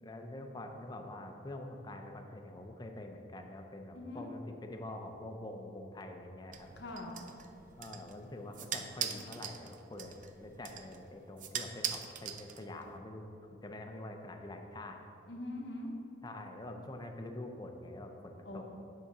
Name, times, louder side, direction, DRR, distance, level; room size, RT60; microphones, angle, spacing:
voice 1, 0.0-6.7 7.8-13.2 13.5-15.0 16.2-18.6, left 1 dB, 25° left, 4 dB, 0.5 m, -45 dB
voice 2, 3.9-4.3 6.8-7.2 15.3-15.9 18.4-18.6, left 1 dB, 70° left, 0 dB, 0.8 m, -42 dB
sound 1, 6.5-13.0, right 8 dB, 45° right, 0.4 m, -42 dB
8.2 x 3.7 x 5.9 m, 2.8 s
head